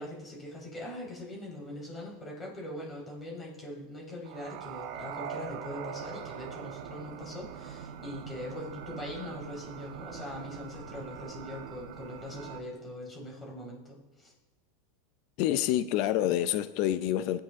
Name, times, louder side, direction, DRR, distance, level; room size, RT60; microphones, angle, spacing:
voice 1, 0.0-14.3, left 1 dB, 20° left, 4.3 m, -42 dB
sound 1, 4.2-12.6, right 8 dB, 60° right, 1.2 m, -42 dB
voice 2, 15.4-17.4, left 12 dB, 55° left, 0.5 m, -27 dB
20.0 x 8.9 x 3.7 m
supercardioid pair, 130°, 0 cm